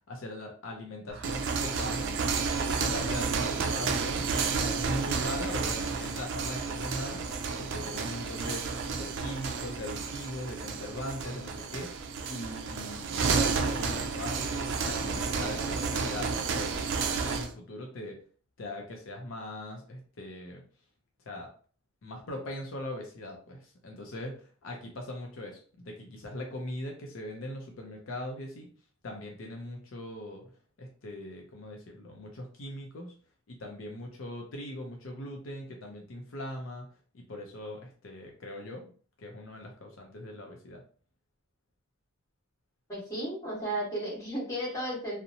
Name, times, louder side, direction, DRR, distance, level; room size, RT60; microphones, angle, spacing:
voice 1, 0.1-2.2 2.8-18.2 18.6-20.6 21.3-21.5 22.0-28.7 29.0-30.4 30.8-33.1 33.5-36.9 37.1-38.9 39.2-40.8, left 1 dB, 70° left, 1 dB, 0.5 m, -41 dB
sound 1, 1.1-17.5, right 4 dB, 60° right, 0.3 m, -31 dB
voice 2, 42.9-45.2, right 1 dB, 15° left, -7 dB, 1.3 m, -34 dB
2.7 x 2.0 x 2.6 m, 0.42 s
head